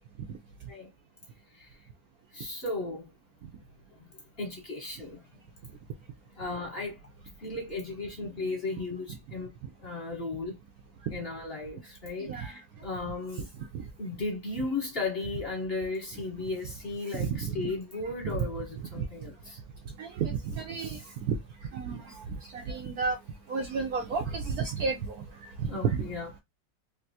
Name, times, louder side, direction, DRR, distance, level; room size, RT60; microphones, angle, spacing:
voice 1, 2.3-3.1 4.4-5.2 6.4-7.0 7.4-9.5 9.8-10.5 11.1-13.5 14.0-19.6 25.7-26.3, left 3 dB, 35° left, 1.2 m, -35 dB
voice 2, 12.2-12.5 13.7-13.8 17.1-17.7 18.2-18.5 19.0-19.1 20.0-21.0 21.3-21.4 21.7-22.2 22.5-23.2 23.5-25.5 25.8-26.1, right 5 dB, 65° right, 1.0 m, -31 dB
3.4 x 2.8 x 2.7 m
omnidirectional pair, 2.0 m